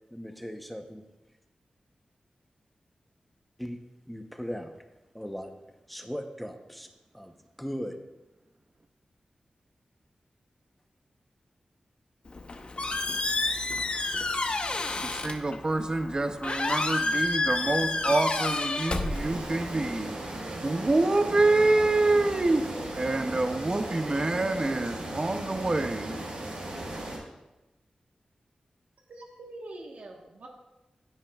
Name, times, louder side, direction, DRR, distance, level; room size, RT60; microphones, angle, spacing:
voice 1, 0.1-1.0 3.6-3.8 4.1-4.7 5.1-5.5 5.9-8.0, equal, ahead, 5 dB, 0.8 m, -38 dB
Squeak, 12.3-19.7, left 3 dB, 50° left, 0.8 m, -30 dB
voice 2, 15.0-20.1 20.6-22.6 23.0-26.1, right 2 dB, 30° right, 7 dB, 0.6 m, -26 dB
sound 1, 19.1-27.2, right 1 dB, 65° right, 3.9 m, -37 dB
voice 3, 29.1-30.5, right 2 dB, 85° right, 0 dB, 1.3 m, -44 dB
15.0 x 8.8 x 2.4 m, 0.99 s
wide cardioid pair, 95°, 2 cm